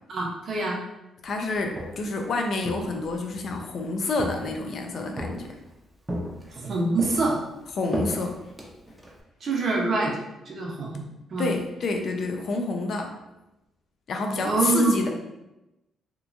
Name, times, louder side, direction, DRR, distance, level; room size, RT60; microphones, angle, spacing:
voice 1, 0.1-0.8 6.6-7.4 9.4-10.2 10.5-11.0 11.3-11.5 14.4-14.9, right 3 dB, 50° right, -2 dB, 0.7 m, -25 dB
voice 2, 1.2-5.5 7.8-8.3 11.4-13.1 14.1-15.1, left 3 dB, 55° left, 3 dB, 0.4 m, -28 dB
Walk footsteps, 1.5-2.2 2.6-3.6 4.2-4.8 5.2-5.7 6.1-6.7 7.0-9.2, equal, 15° right, 0.5 m, -34 dB
2.9 x 2.3 x 2.5 m, 0.95 s
cardioid pair, 90°, 0 cm